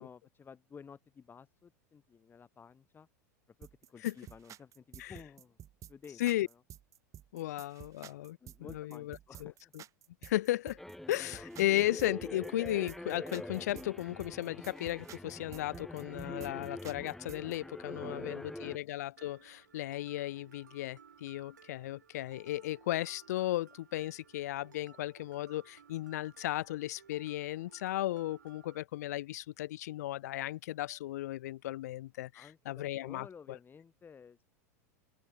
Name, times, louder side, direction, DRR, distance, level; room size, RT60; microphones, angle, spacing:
voice 1, 0.0-3.1 3.6-5.6 5.9-6.6 7.4-7.5 8.4-9.7 18.0-18.7 32.3-34.4, left 6 dB, 20° left, 2.2 m, -54 dB
sound 1, 3.6-17.6, right 11 dB, 35° right, 1.6 m, -52 dB
voice 2, 7.3-9.8 10.2-10.8 11.1-33.6, left 15 dB, 70° left, 0.6 m, -35 dB
sound 2, 10.8-18.8, left 1 dB, 5° left, 1.0 m, -44 dB
Mallet percussion, 19.2-28.8, right 7 dB, 90° right, 1.5 m, -60 dB
hypercardioid pair, 95°, 9 cm